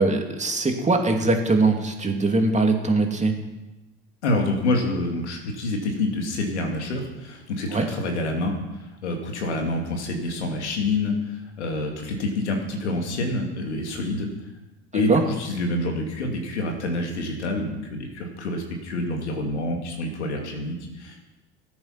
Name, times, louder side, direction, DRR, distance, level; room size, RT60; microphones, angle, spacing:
voice 1, 0.0-3.3 7.7-7.9 14.9-15.2, right 3 dB, 20° right, 3 dB, 2.6 m, -21 dB
voice 2, 4.2-8.5 9.0-11.1 11.6-14.3 14.9-21.3, left 2 dB, 85° left, 2 dB, 2.5 m, -27 dB
15.0 x 8.8 x 5.9 m, 1.0 s
hypercardioid pair, 70°, 33 cm